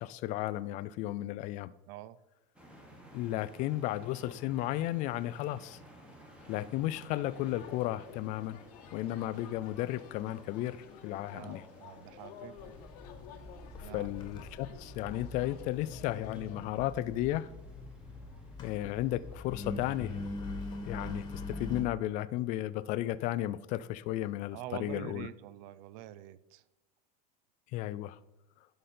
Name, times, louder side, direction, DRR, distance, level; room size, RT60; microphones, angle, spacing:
voice 1, 0.0-1.7 3.1-5.8 6.5-8.6 8.9-11.7 13.8-17.5 18.6-20.2 20.8-25.3 27.7-28.2, left 14 dB, 40° left, 0.4 m, -34 dB
sound 1, 2.6-20.2, equal, 5° right, 1.4 m, -57 dB
sound 2, 6.4-16.6, left 8 dB, 70° left, 1.0 m, -52 dB
voice 2, 11.3-12.8 13.8-14.1 24.5-26.6, right 13 dB, 55° right, 0.5 m, -46 dB
Engine, 12.6-21.8, left 2 dB, 20° left, 1.4 m, -43 dB
11.5 x 5.2 x 4.3 m
supercardioid pair, 155°, 21 cm